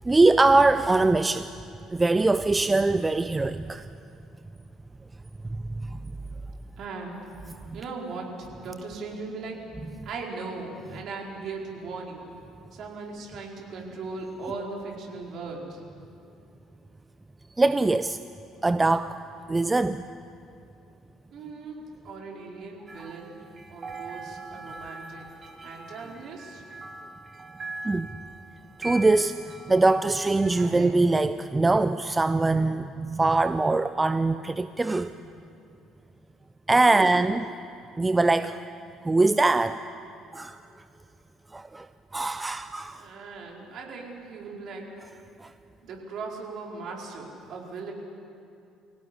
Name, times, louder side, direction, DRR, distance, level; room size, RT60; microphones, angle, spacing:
voice 1, 0.0-1.5 1.9-3.9 5.8-6.1 7.7-7.8 17.6-18.2 18.6-19.2 19.5-20.0 22.9-23.1 27.8-28.2 28.8-35.1 36.7-37.5 38.0-38.6 39.0-39.8 40.3-40.6 41.5-41.9 42.1-43.0 45.4-45.5, right 2 dB, 20° right, 12 dB, 0.7 m, -22 dB
voice 2, 6.8-7.2 7.7-9.6 10.0-12.3 12.7-15.8 21.3-23.4 23.7-25.3 25.6-26.6 30.5-31.0 36.9-37.3 42.9-44.9 45.8-47.9, right 4 dB, 55° right, -1 dB, 4.7 m, -38 dB
sound 1, 22.9-30.0, right 2 dB, 35° right, 2.5 m, -42 dB
24.5 x 17.0 x 10.0 m, 2.5 s
figure-of-eight pair, 55°, 0 cm